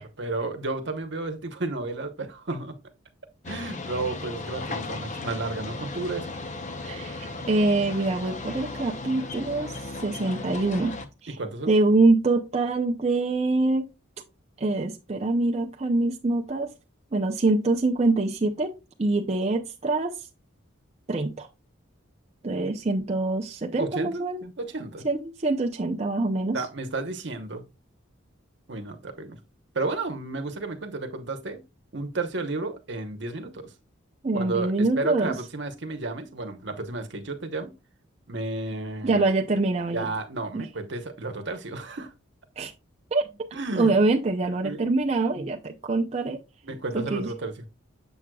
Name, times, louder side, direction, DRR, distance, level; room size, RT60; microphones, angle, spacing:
voice 1, 0.0-2.7 3.5-6.3 11.4-11.7 23.8-25.0 26.5-27.6 28.7-29.4 29.7-31.6 31.9-33.7 34.3-37.7 38.3-39.3 39.9-42.1 43.5-43.9 44.6-44.8 45.4-45.5 46.6-47.5, right 3 dB, 55° right, 0.9 m, -32 dB
sound 1, 3.4-11.0, left 3 dB, 35° left, 0.6 m, -36 dB
voice 2, 6.8-9.7 10.0-11.0 11.2-11.4 11.7-13.9 14.6-16.7 17.1-18.7 19.0-20.2 21.1-21.5 22.4-24.4 25.0-26.6 34.2-35.4 39.0-40.1 40.5-40.6 42.6-42.7 43.1-46.4 46.9-47.3, right 2 dB, 30° right, 0.5 m, -24 dB
7.1 x 6.1 x 2.3 m
head